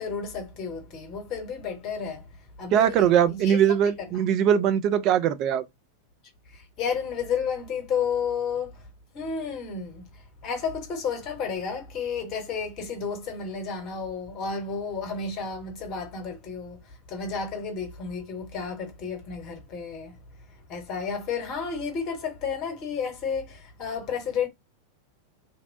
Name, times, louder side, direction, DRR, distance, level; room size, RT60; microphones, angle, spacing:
voice 1, 0.0-2.3 2.6-3.6 4.0-4.1 6.5-8.8 9.1-20.2 20.7-24.5, left 6 dB, 35° left, 0.9 m, -32 dB
voice 2, 2.7-5.6, right 9 dB, 40° right, 0.3 m, -21 dB
2.6 x 2.0 x 2.5 m
figure-of-eight pair, 90°, 0 cm